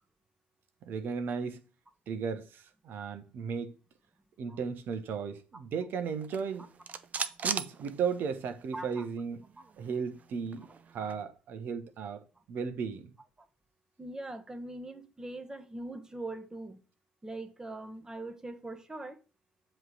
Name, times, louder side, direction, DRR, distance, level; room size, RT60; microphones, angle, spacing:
voice 1, 0.8-1.6 2.1-3.7 4.4-6.7 7.4-9.4 9.8-13.1, right 6 dB, 55° right, 1.2 m, -35 dB
sound 1, 6.2-8.6 8.9-9.0 9.3-11.2, right 6 dB, 40° right, 0.7 m, -39 dB
voice 2, 8.7-9.1 14.0-16.8 17.2-19.2, right 2 dB, 15° right, 1.4 m, -42 dB
7.8 x 3.4 x 6.3 m
hypercardioid pair, 55°, 4 cm